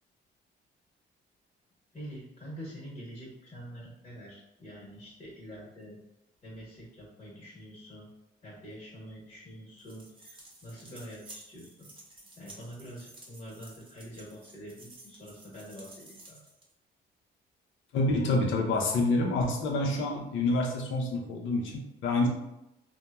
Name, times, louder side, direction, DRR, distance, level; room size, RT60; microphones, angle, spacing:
voice 1, 1.9-6.0 6.4-8.1 8.4-11.9 12.4-16.4, equal, 40° left, -6 dB, 1.1 m, -46 dB
sound 1, 9.8-16.7, right 2 dB, 25° right, 0.7 m, -52 dB
voice 2, 17.9-22.3, left 2 dB, 75° left, 1 dB, 0.6 m, -27 dB
2.9 x 2.2 x 2.2 m, 0.90 s
cardioid pair, 90°, 20 cm